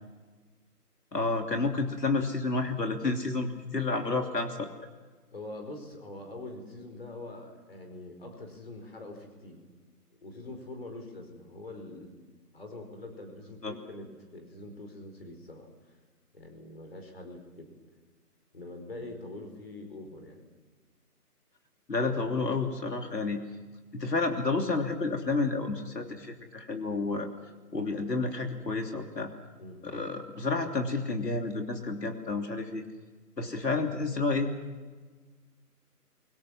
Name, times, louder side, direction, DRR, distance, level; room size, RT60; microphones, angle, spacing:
voice 1, 1.1-4.7 13.6-13.7 21.9-23.4 23.9-27.3 27.7-29.3 29.8-32.8 33.4-34.5, left 3 dB, 80° left, 3 dB, 3.1 m, -30 dB
voice 2, 5.3-9.6 10.2-12.2 12.5-16.0 16.3-17.7 18.5-20.4 29.6-29.8, left 2 dB, 40° left, 4 dB, 4.9 m, -44 dB
29.5 x 24.0 x 6.3 m, 1.4 s
figure-of-eight pair, 180°, 48 cm